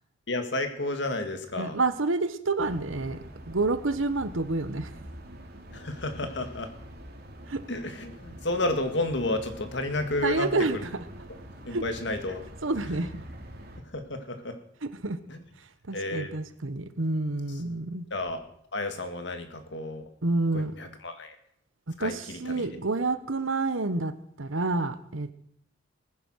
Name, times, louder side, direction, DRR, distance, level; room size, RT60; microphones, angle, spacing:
voice 1, 0.3-1.8 5.7-6.7 7.7-10.7 11.7-12.4 13.0-13.1 13.8-14.6 15.3-15.4 15.9-16.4 17.5-17.6 18.1-18.4 18.7-20.1 20.5-21.4 22.0-22.7, left 2 dB, 60° left, 7 dB, 2.1 m, -31 dB
voice 2, 1.6-3.2 3.5-4.9 7.5-7.6 10.2-10.8 11.7-11.8 12.6-13.2 14.8-15.2 15.9-18.1 20.2-20.7 22.0-25.3, right 3 dB, 85° right, 12 dB, 1.2 m, -28 dB
sound 1, 2.6-13.8, equal, 55° right, 2.8 m, -45 dB
19.5 x 10.0 x 6.4 m, 0.66 s
head